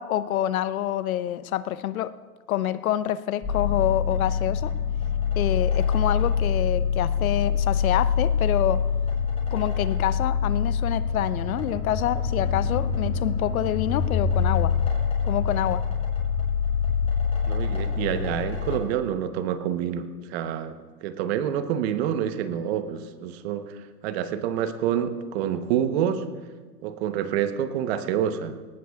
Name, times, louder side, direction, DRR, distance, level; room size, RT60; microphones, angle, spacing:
voice 1, 0.0-2.1 2.5-4.7 5.4-8.9 9.5-14.7 15.2-15.8, left 12 dB, 60° left, 16 dB, 0.7 m, -27 dB
sound 1, 3.4-18.8, left 6 dB, 15° left, 5.4 m, -25 dB
voice 2, 17.5-20.8 21.0-26.2 26.8-28.6, right 9 dB, 40° right, 10 dB, 1.0 m, -27 dB
18.5 x 18.0 x 2.4 m, 1.4 s
hypercardioid pair, 125°, 47 cm